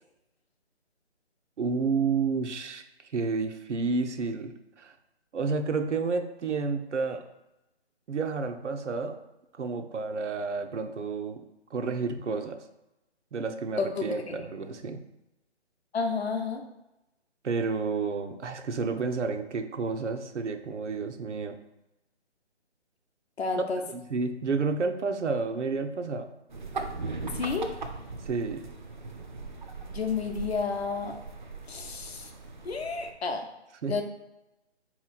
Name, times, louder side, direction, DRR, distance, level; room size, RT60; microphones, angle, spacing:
voice 1, 1.6-2.8 3.1-4.9 5.3-7.2 8.1-9.2 9.6-11.4 11.7-12.6 13.3-15.0 17.4-21.6 23.5-23.6 23.9-26.3 28.3-28.6 33.8-34.0, right 4 dB, 90° right, 7 dB, 0.6 m, -30 dB
voice 2, 13.8-14.4 15.9-16.6 23.4-23.8 27.3-27.7 29.9-31.2 31.7-32.3 32.6-33.5 33.9-34.0, left 4 dB, 60° left, 4 dB, 0.7 m, -31 dB
sound 1, 26.5-33.1, right 3 dB, 45° right, 0.4 m, -39 dB
3.8 x 3.0 x 3.9 m, 0.96 s
figure-of-eight pair, 155°, 35 cm